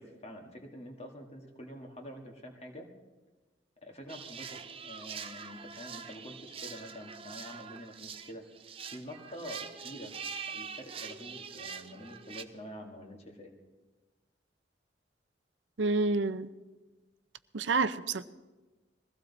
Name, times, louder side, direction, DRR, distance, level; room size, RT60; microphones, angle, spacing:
voice 1, 0.0-2.9 3.8-8.5 8.9-10.2 10.5-13.5, equal, 35° left, 2 dB, 1.9 m, -46 dB
sound 1, 4.1-12.4, right 6 dB, 30° right, 0.7 m, -44 dB
voice 2, 15.8-16.5 17.5-18.2, right 3 dB, 85° right, 13 dB, 0.6 m, -28 dB
22.0 x 15.5 x 4.1 m, 1.2 s
head